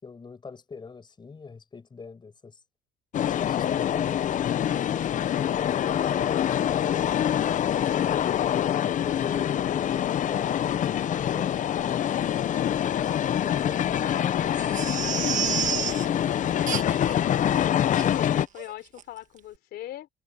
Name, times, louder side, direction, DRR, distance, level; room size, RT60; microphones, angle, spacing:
voice 1, 0.0-2.6 3.2-7.2 7.6-8.4 9.0-16.3, left 5 dB, 25° left, 6.1 m, -42 dB
sound 1, 3.1-18.5, left 10 dB, 50° left, 0.7 m, -25 dB
Crying sobbing, 14.5-16.0 16.7-17.1 17.5-17.6 17.9-18.1 18.6-18.7 19.0-19.1, right 9 dB, 50° right, 1.4 m, -30 dB
voice 2, 17.7-20.1, left 13 dB, 75° left, 3.6 m, -39 dB
cardioid pair, 110°, 17 cm